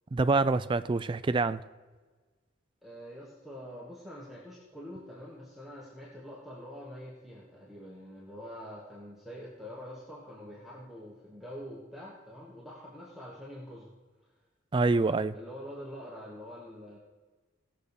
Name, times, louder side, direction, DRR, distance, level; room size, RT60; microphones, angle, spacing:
voice 1, 0.1-1.6 14.7-15.3, right 3 dB, 25° right, 13 dB, 0.3 m, -26 dB
voice 2, 2.8-13.9 15.0-17.0, equal, ahead, -5 dB, 1.4 m, -45 dB
17.5 x 6.7 x 5.0 m, 1.3 s
head